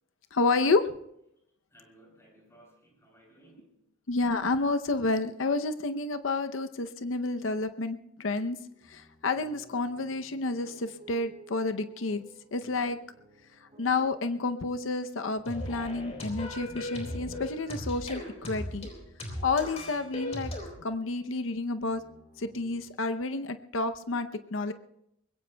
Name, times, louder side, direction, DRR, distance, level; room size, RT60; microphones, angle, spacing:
voice 1, 0.3-0.8 4.1-8.6 8.9-13.0 13.8-18.9 19.4-20.5 20.8-22.0 22.4-24.7, left 3 dB, 85° left, 9 dB, 0.7 m, -30 dB
voice 2, 1.7-3.8, right 1 dB, 15° left, -3 dB, 7.3 m, -58 dB
sound 1, 8.3-22.8, right 2 dB, 35° right, 4.7 m, -57 dB
sound 2, 15.5-20.7, left 1 dB, 35° left, 3.7 m, -37 dB
24.0 x 21.0 x 2.2 m, 0.80 s
head